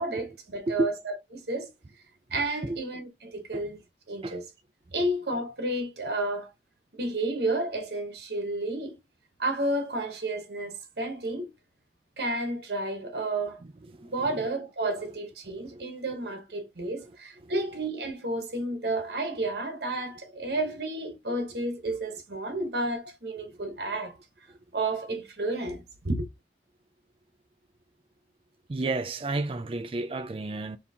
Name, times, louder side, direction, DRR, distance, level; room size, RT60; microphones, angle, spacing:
voice 1, 0.0-1.7 2.3-3.8 4.1-4.4 4.9-6.5 6.9-9.0 9.4-11.5 12.2-13.6 14.0-24.2 24.7-26.3, right 2 dB, 65° right, 1.0 m, -31 dB
voice 2, 28.7-30.8, right 2 dB, 30° right, 0.4 m, -31 dB
4.2 x 2.9 x 3.4 m
head